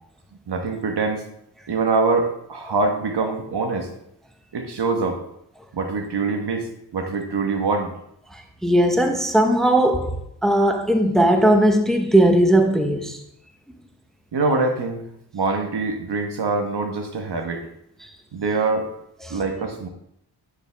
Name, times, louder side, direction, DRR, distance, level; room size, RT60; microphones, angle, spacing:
voice 1, 0.5-1.2 1.7-3.9 4.5-5.2 5.7-7.9 14.3-15.0 15.3-17.7 18.3-18.9 19.3-19.9, right 3 dB, 60° right, 1.2 m, -24 dB
voice 2, 8.3-10.1 10.4-13.2 19.2-19.4, right 1 dB, ahead, 0.9 m, -18 dB
9.0 x 5.0 x 3.4 m
cardioid pair, 55°, 46 cm